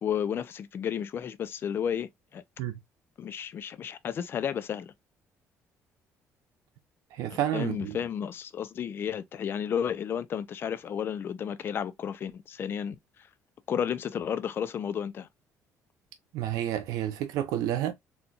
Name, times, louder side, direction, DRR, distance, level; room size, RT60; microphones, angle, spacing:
voice 1, 0.0-2.4 3.2-4.9 7.3-13.0 13.7-15.3, left 8 dB, 40° left, 0.4 m, -32 dB
voice 2, 7.1-8.0 16.3-17.9, right 12 dB, 90° right, 0.6 m, -30 dB
4.2 x 2.3 x 2.6 m
cardioid pair, 145°, 6 cm